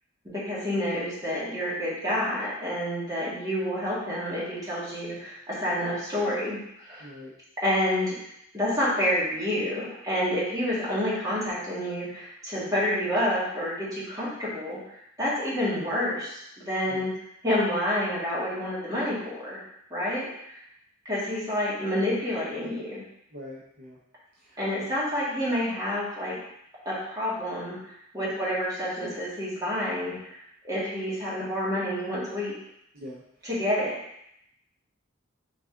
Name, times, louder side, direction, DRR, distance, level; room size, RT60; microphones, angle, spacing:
voice 1, 0.3-7.1 7.6-8.2 8.5-17.1 17.4-19.6 19.9-20.6 21.0-23.0 24.6-26.4 26.8-30.4 30.6-32.5 33.4-33.9, left 1 dB, 20° right, -8 dB, 1.6 m, -28 dB
voice 2, 7.0-7.3 16.9-17.0 23.3-24.0 24.4-24.6 32.9-33.2, left 1 dB, 50° right, -6 dB, 0.8 m, -43 dB
4.1 x 3.4 x 3.7 m, 0.78 s
head